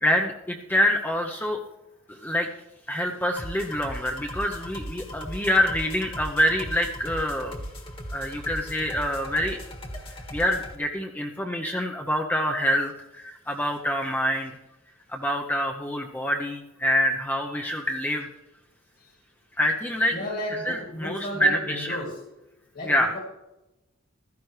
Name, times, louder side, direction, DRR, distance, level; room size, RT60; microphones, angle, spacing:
voice 1, 0.0-1.6 2.1-2.5 2.9-7.6 8.1-9.6 10.3-14.6 15.1-18.3 19.6-20.2 20.5-22.0 22.9-23.1, equal, 10° left, 1 dB, 0.7 m, -26 dB
sound 1, 3.4-10.7, equal, 25° left, 1.5 m, -38 dB
voice 2, 20.1-22.2 22.7-23.2, left 1 dB, 50° left, -2 dB, 2.1 m, -34 dB
15.5 x 13.0 x 3.3 m, 0.95 s
head